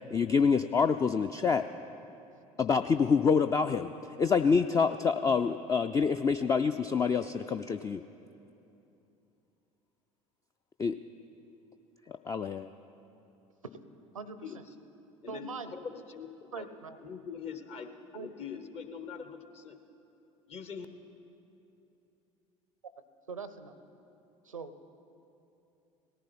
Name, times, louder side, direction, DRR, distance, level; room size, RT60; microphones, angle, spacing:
voice 1, 0.1-1.7 2.6-3.9 4.2-8.0 10.8-11.0 12.1-12.7, left 5 dB, 20° left, 9 dB, 0.3 m, -26 dB
voice 2, 14.1-14.7 15.3-15.7 16.5-17.0 18.1-18.3 23.3-23.8 24.4-24.7, right 5 dB, 90° right, 12 dB, 0.6 m, -42 dB
voice 3, 15.2-16.7 17.0-19.8 20.5-20.9, left 6 dB, 40° left, 8 dB, 1.1 m, -43 dB
18.0 x 14.5 x 4.2 m, 2.9 s
figure-of-eight pair, 65°, 17 cm